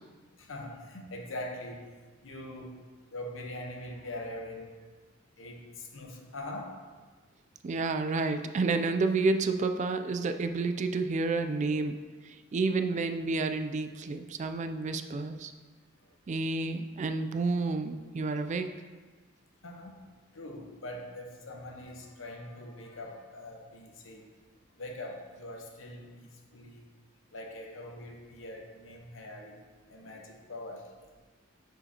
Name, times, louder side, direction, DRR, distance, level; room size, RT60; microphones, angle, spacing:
voice 1, 0.4-1.9 2.2-2.8 3.1-4.8 5.4-6.8 19.6-24.3 24.8-26.8 27.3-29.6 29.9-30.9, left 1 dB, 80° left, 2 dB, 1.0 m, -43 dB
voice 2, 7.6-11.9 12.2-15.5 16.3-18.7, right 3 dB, 35° right, 8 dB, 0.3 m, -30 dB
7.9 x 4.9 x 2.8 m, 1.4 s
head